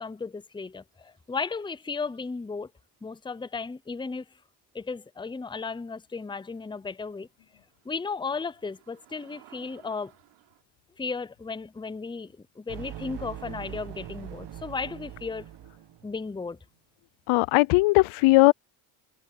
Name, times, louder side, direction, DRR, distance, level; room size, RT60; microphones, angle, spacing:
voice 1, 0.0-2.7 3.0-4.2 4.7-7.3 7.8-10.1 11.0-15.5 16.0-16.6, left 4 dB, 10° left, 0.7 m, -35 dB
sound 1, 0.9-2.4 6.0-6.1 6.6-6.7 6.8-10.6, right 19 dB, 90° right, 6.3 m, -59 dB
sound 2, 12.7-16.3, right 11 dB, 60° right, 1.8 m, -42 dB
voice 2, 17.3-18.5, left 22 dB, 80° left, 0.6 m, -19 dB
supercardioid pair, 75°, 47 cm